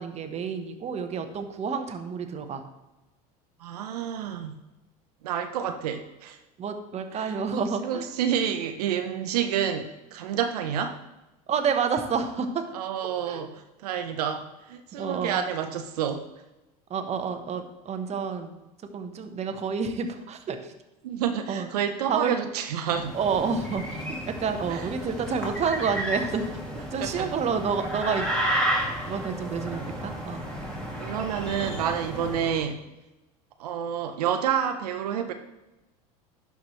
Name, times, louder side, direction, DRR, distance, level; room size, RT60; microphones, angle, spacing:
voice 1, 0.0-2.6 6.6-8.1 11.5-12.6 13.2-13.5 15.0-15.4 16.9-18.6 18.9-20.7 21.5-21.7 22.1-22.3 23.1-26.4 26.9-28.3 29.1-30.4, right 6 dB, 35° right, 6 dB, 1.0 m, -29 dB
voice 2, 3.6-4.6 5.2-6.4 7.1-11.0 12.7-16.3 21.0-23.1 24.7-24.8 27.0-27.3 31.0-32.8 33.6-35.3, right 8 dB, 90° right, 7 dB, 0.6 m, -29 dB
sound 1, 22.9-32.7, right 1 dB, 5° left, 2.4 m, -32 dB
11.5 x 4.8 x 3.1 m, 1.0 s
supercardioid pair, 95°, 19 cm